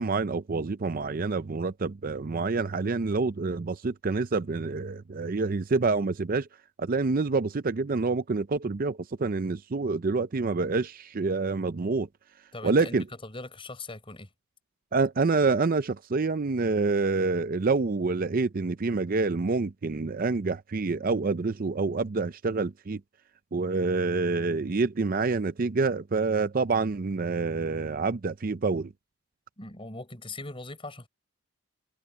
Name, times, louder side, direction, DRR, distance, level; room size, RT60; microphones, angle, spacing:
voice 1, 0.0-6.5 6.8-12.1 12.6-13.0 14.9-23.0 23.5-28.9, right 3 dB, 40° right, 0.5 m, -27 dB
voice 2, 12.5-13.0 13.2-14.3 29.6-31.1, left 2 dB, 25° left, 4.7 m, -40 dB
head